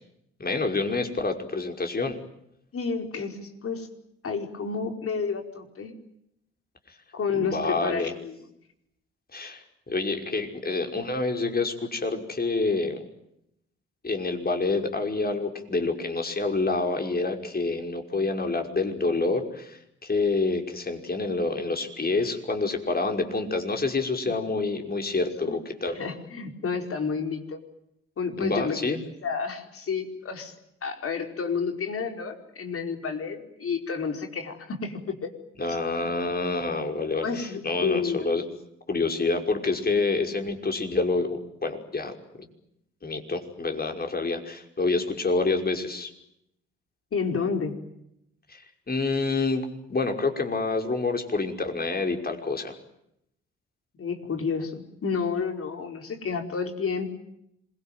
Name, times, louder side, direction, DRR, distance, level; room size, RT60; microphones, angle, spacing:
voice 1, 0.4-2.2 7.3-8.1 9.3-13.0 14.0-26.0 28.4-29.0 35.6-38.4 38.9-42.1 43.0-46.1 48.5-48.6 48.9-52.7, left 3 dB, 30° left, 4 dB, 5.6 m, -27 dB
voice 2, 2.7-3.9 4.2-5.9 7.1-8.4 25.4-25.6 26.0-27.6 28.2-28.9 29.2-30.5 30.8-35.3 36.0-36.2 37.2-38.3 47.1-47.8 54.0-57.1, left 5 dB, 50° left, 4 dB, 5.0 m, -30 dB
26.5 x 22.5 x 9.3 m, 0.79 s
hypercardioid pair, 45°, 30 cm